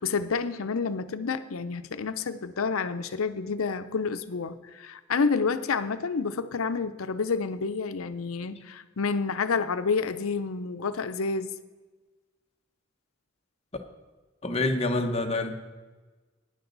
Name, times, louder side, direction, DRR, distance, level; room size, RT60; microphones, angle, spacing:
voice 1, 0.0-11.5, left 5 dB, 85° left, 11 dB, 0.6 m, -29 dB
voice 2, 14.4-15.5, left 2 dB, 30° left, 4 dB, 1.0 m, -26 dB
15.5 x 10.0 x 3.9 m, 1.3 s
head